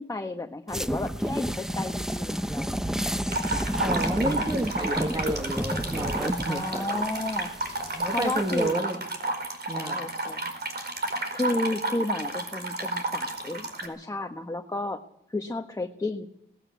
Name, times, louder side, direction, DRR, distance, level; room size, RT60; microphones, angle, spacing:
voice 1, 0.0-2.7 6.5-7.5 8.1-8.8 9.7-10.5 11.3-15.0 15.3-16.3, left 2 dB, 20° left, 5 dB, 1.3 m, -32 dB
sound 1, 0.7-8.7, equal, 5° right, 0.8 m, -31 dB
sound 2, 3.3-13.9, right 2 dB, 55° right, 4.7 m, -31 dB
voice 2, 3.8-6.8 7.9-9.0 9.7-10.0 10.3-10.4, right 1 dB, 20° right, 4 dB, 2.2 m, -30 dB
19.0 x 16.5 x 8.3 m, 0.76 s
wide cardioid pair, 85°, 19 cm